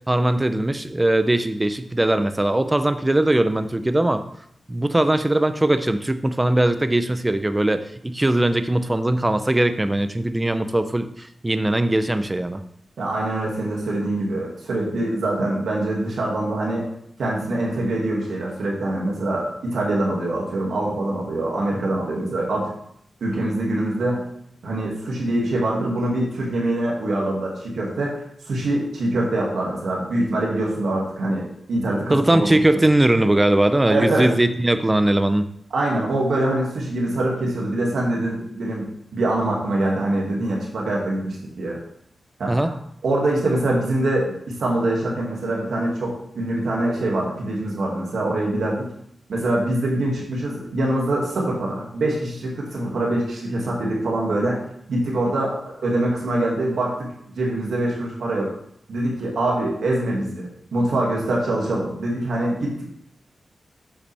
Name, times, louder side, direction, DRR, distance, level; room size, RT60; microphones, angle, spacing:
voice 1, 0.1-4.2 4.7-12.6 32.1-35.5 42.5-42.7, right 1 dB, 20° right, 10 dB, 0.6 m, -20 dB
voice 2, 13.0-16.9 17.2-22.7 23.2-24.2 24.6-32.8 33.9-34.3 35.7-38.9 39.1-41.8 42.4-42.8 43.0-48.9 49.3-54.6 54.9-55.6 55.8-58.5 58.9-62.8, right 1 dB, 85° right, -3 dB, 2.2 m, -24 dB
8.5 x 5.7 x 3.4 m, 0.70 s
cardioid pair, 65°, 0 cm